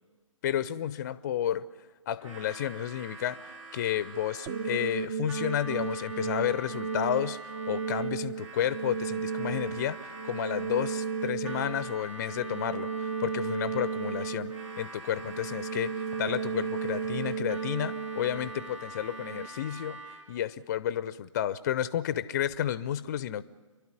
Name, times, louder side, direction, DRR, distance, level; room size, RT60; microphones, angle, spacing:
voice 1, 0.4-1.7 2.1-20.0 20.3-23.4, left 10 dB, 30° left, 16 dB, 0.6 m, -31 dB
Harmonica, 2.2-20.4, right 2 dB, 65° right, 2.6 m, -45 dB
sound 1, 4.5-19.5, right 6 dB, 20° right, 0.6 m, -34 dB
28.5 x 12.0 x 9.7 m, 1.3 s
figure-of-eight pair, 140°, 17 cm